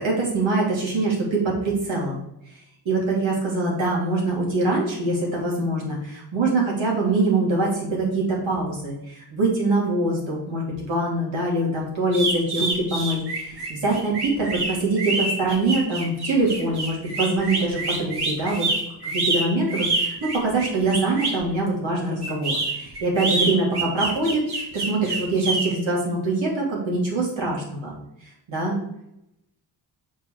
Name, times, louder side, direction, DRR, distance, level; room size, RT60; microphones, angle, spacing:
voice 1, 0.0-2.2 2.8-18.7 19.1-27.9 28.5-28.8, right 2 dB, 70° right, -4 dB, 3.1 m, -24 dB
sound 1, 12.1-21.4 22.2-25.7, right 3 dB, 55° right, 2.5 m, -26 dB
6.8 x 4.6 x 4.9 m, 0.82 s
cardioid pair, 70°, 47 cm